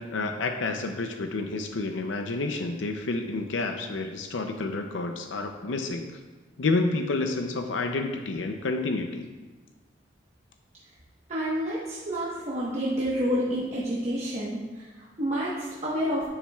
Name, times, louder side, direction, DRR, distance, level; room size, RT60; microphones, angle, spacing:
voice 1, 0.0-6.1 6.6-9.3, left 3 dB, 80° left, 5 dB, 0.6 m, -29 dB
voice 2, 11.3-16.3, equal, 35° right, -7 dB, 1.1 m, -29 dB
10.5 x 7.3 x 2.3 m, 1.3 s
head